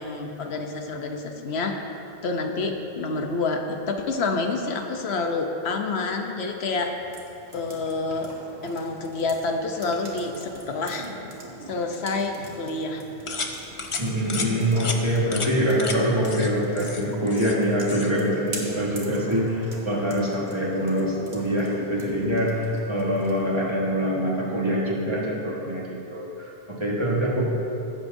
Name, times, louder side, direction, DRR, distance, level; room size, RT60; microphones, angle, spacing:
voice 1, 0.0-1.8 2.2-6.9 7.5-8.3 8.6-11.1 11.7-13.0, left 3 dB, 80° left, 4 dB, 1.1 m, -28 dB
sound 1, 6.7-23.6, right 2 dB, 90° right, 1.7 m, -43 dB
sound 2, 13.3-13.5 13.8-14.0 14.3-14.5 14.8-15.0 15.3-15.5 15.8-16.0 16.2-16.5 16.8-17.6 17.8-18.1, left 4 dB, 35° left, 0.6 m, -31 dB
voice 2, 14.0-27.4, equal, 25° right, -5 dB, 1.6 m, -24 dB
16.0 x 7.9 x 2.6 m, 2.9 s
omnidirectional pair, 1.1 m